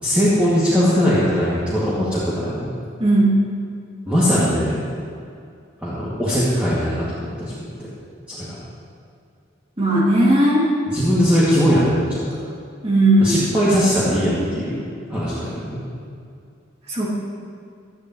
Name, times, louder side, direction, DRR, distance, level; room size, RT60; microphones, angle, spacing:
voice 1, 0.0-2.7 4.1-4.9 5.8-7.7 8.3-8.6 10.9-12.2 13.2-14.8 15.1-15.8, equal, 5° right, -11 dB, 2.4 m, -20 dB
voice 2, 3.0-3.4 9.8-10.6 12.8-13.5 16.9-17.1, right 1 dB, 30° right, -5 dB, 2.6 m, -16 dB
18.0 x 12.0 x 3.2 m, 2.4 s
head